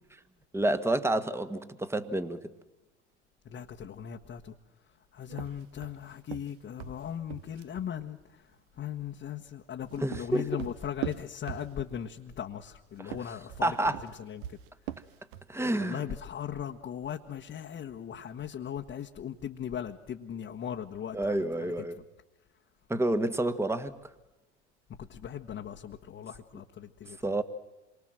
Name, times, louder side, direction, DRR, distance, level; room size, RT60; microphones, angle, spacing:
voice 1, 0.5-2.4 10.0-10.6 13.0-13.1 13.6-14.0 15.5-16.0 21.1-22.0 22.9-23.9 27.2-27.4, right 1 dB, 5° right, 12 dB, 1.6 m, -29 dB
voice 2, 3.4-4.5 5.1-14.6 15.8-21.7 25.0-27.4, left 9 dB, 30° left, 2 dB, 1.4 m, -38 dB
sound 1, 5.3-7.9 9.6-12.1 13.0-15.6, right 12 dB, 60° right, 1.2 m, -41 dB
27.0 x 24.0 x 7.7 m, 1.0 s
hypercardioid pair, 85°, 35 cm